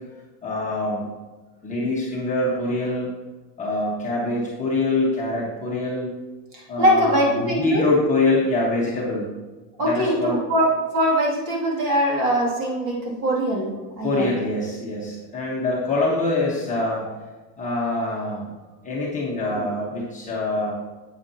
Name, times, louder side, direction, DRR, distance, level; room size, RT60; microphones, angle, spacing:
voice 1, 0.4-1.1 1.6-3.1 3.6-6.1 6.7-9.3 9.8-10.4 14.0-17.1 17.6-18.5 18.8-20.7, left 2 dB, 15° left, -5 dB, 1.2 m, -24 dB
voice 2, 6.5-7.8 9.8-10.7 10.9-14.3, equal, 40° right, -4 dB, 2.5 m, -22 dB
8.6 x 8.3 x 2.8 m, 1.2 s
supercardioid pair, 160°, 49 cm